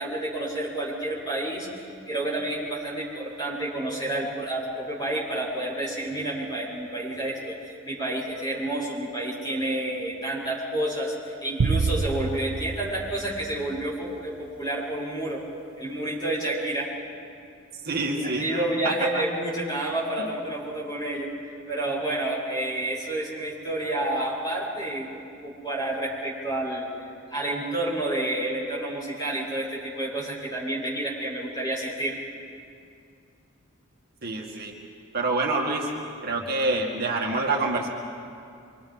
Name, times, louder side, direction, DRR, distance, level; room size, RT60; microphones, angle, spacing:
voice 1, 0.0-15.4 15.8-16.9 18.2-21.3 21.7-25.1 25.4-26.9 27.3-32.2, right 1 dB, 20° left, -5 dB, 6.9 m, -29 dB
sound 1, 11.6-14.1, right 4 dB, 90° right, 0.6 m, -28 dB
voice 2, 17.8-19.2 34.2-34.7 35.1-35.9 36.2-37.9, right 2 dB, 50° right, -1 dB, 2.0 m, -27 dB
26.5 x 25.0 x 5.5 m, 2.4 s
head